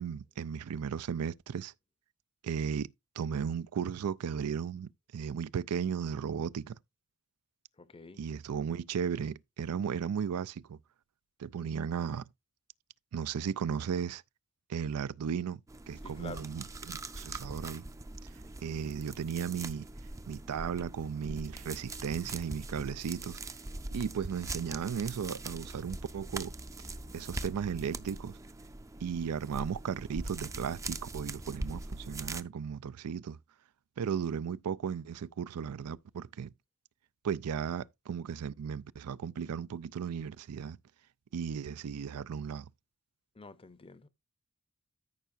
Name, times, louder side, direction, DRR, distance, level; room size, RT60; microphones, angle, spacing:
voice 1, 0.0-1.7 2.4-2.9 3.2-6.8 8.2-10.8 11.4-12.3 13.1-14.2 14.7-15.6 15.9-17.8 18.6-19.9 20.3-23.4 23.9-26.5 27.1-28.4 29.0-33.4 34.0-36.5 37.2-40.8 41.3-42.7, right 7 dB, 85° right, 0.4 m, -35 dB
voice 2, 7.8-8.2 16.0-16.5 43.4-44.1, left 3 dB, 25° left, 0.6 m, -48 dB
sound 1, 15.7-32.4, right 2 dB, 15° right, 0.5 m, -42 dB
13.5 x 5.6 x 2.6 m
head